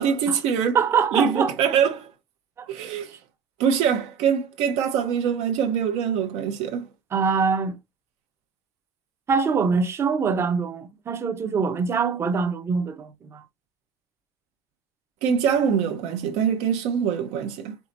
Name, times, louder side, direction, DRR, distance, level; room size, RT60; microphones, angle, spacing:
voice 1, 0.0-0.8 1.1-2.1 2.7-3.1 3.6-6.9 15.2-17.8, right 7 dB, 65° right, 0.9 m, -23 dB
voice 2, 0.7-1.5 2.6-2.7 7.1-7.7 9.3-13.4, right 5 dB, 20° right, 0.7 m, -23 dB
5.0 x 3.9 x 2.5 m
cardioid pair, 170°, 11 cm